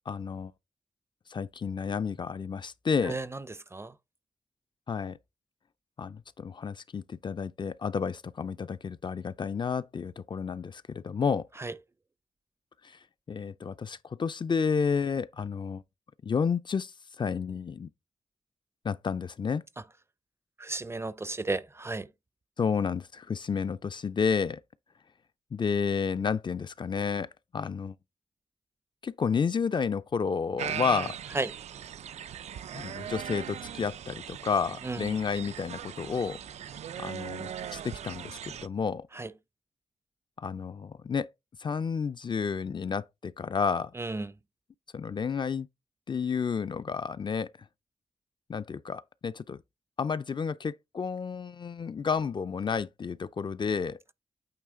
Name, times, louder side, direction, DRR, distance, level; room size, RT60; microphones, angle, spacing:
voice 1, 0.1-0.5 1.3-3.2 4.9-5.2 6.0-11.5 12.8-13.0 13.3-15.8 16.2-17.9 18.8-19.6 22.6-24.6 25.5-28.0 29.0-31.2 32.7-36.4 37.0-39.1 40.4-41.3 41.6-43.9 44.9-45.7 46.1-47.5 48.5-49.6 50.0-54.0, left 6 dB, 45° left, 0.4 m, -31 dB
voice 2, 3.0-3.9 11.6-11.7 20.6-22.1 31.3-31.5 34.8-35.2 39.1-39.3 43.9-44.3, right 2 dB, 25° right, 0.5 m, -34 dB
sound 1, 30.6-38.7, right 9 dB, 85° right, 0.4 m, -39 dB
8.8 x 3.1 x 3.7 m
cardioid pair, 70°, 11 cm